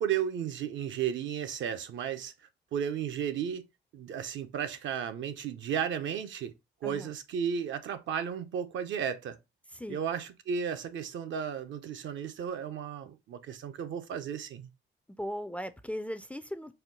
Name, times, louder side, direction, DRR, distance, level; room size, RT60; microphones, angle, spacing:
voice 1, 0.0-2.3 2.7-3.6 3.9-6.5 6.8-9.4 9.9-14.7, right 8 dB, 70° right, 0.7 m, -34 dB
voice 2, 9.7-10.1 15.1-16.7, equal, 5° left, 0.4 m, -38 dB
4.4 x 2.2 x 3.8 m
cardioid pair, 90°, 20 cm